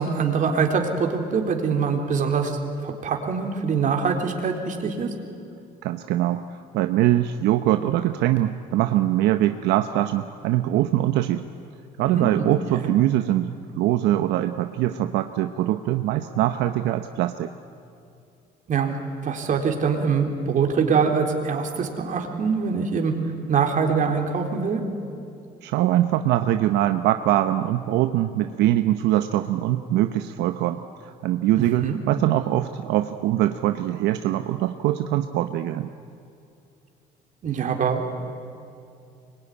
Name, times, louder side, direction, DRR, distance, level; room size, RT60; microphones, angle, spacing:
voice 1, 0.0-5.1 12.1-12.9 18.7-19.0 19.2-23.1 23.5-24.8 31.6-32.0 37.4-38.1, right 5 dB, 50° right, 3 dB, 3.7 m, -24 dB
voice 2, 5.8-6.4 6.7-11.4 12.0-17.5 25.6-30.8 31.2-35.9, right 13 dB, 85° right, 8 dB, 0.9 m, -22 dB
24.5 x 22.0 x 10.0 m, 2.6 s
cardioid pair, 110°, 17 cm